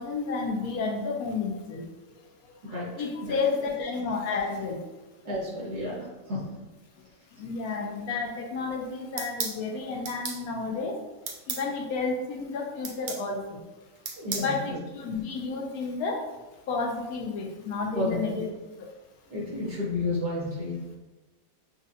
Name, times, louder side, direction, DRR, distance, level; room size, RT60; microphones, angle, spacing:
voice 1, 0.0-1.8 2.7-4.8 7.4-11.0 11.5-13.6 14.4-16.2 16.7-18.3 18.8-18.9, left 4 dB, 70° left, 1 dB, 1.0 m, -31 dB
voice 2, 5.2-6.5 7.4-7.5 14.2-14.6 17.9-18.5 19.3-20.8, left 2 dB, 65° right, -5 dB, 1.8 m, -31 dB
sound 1, 9.2-9.6 10.0-10.4 11.3-11.6 12.8-13.2 14.0-14.5, right 5 dB, 80° right, 0.6 m, -33 dB
6.2 x 2.4 x 2.7 m, 1.1 s
omnidirectional pair, 1.9 m